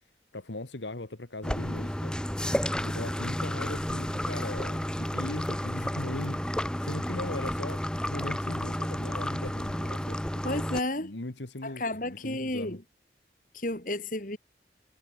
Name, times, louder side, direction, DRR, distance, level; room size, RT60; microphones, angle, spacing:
voice 1, 0.3-2.2 2.8-10.4 11.0-12.8, left 2 dB, 85° left, 1.8 m, -39 dB
sound 1, 1.4-10.8, equal, 5° left, 1.0 m, -31 dB
voice 2, 10.4-11.1 11.6-12.8 13.5-14.4, left 1 dB, 45° left, 4.1 m, -32 dB
head